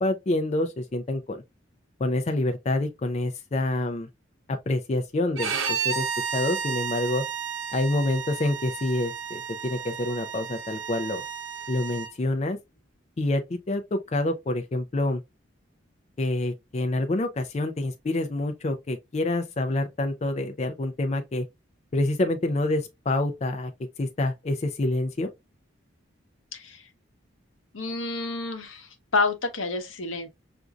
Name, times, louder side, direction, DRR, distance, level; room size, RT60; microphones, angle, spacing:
voice 1, 0.0-1.4 2.0-4.1 4.7-6.1 6.3-7.2 7.7-11.2 11.7-12.6 13.2-15.2 16.2-21.4 21.9-23.7 24.0-25.3, left 2 dB, 30° left, 0.4 m, -27 dB
Bowed string instrument, 5.4-12.1, right 6 dB, 80° right, 0.8 m, -32 dB
voice 2, 26.5-26.9 27.7-30.3, left 3 dB, 75° left, 0.9 m, -29 dB
5.9 x 2.6 x 2.3 m
head